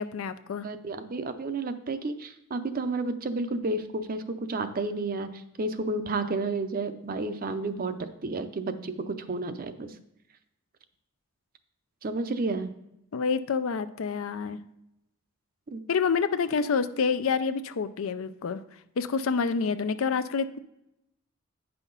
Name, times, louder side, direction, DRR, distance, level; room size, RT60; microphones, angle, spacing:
voice 1, 0.0-0.7 13.1-14.6 15.9-18.6 19.0-20.6, left 5 dB, 80° left, 12 dB, 0.5 m, -28 dB
voice 2, 0.6-9.9 12.0-12.7 15.7-15.8, right 3 dB, 45° right, 10 dB, 0.6 m, -31 dB
9.1 x 5.7 x 3.9 m, 0.83 s
head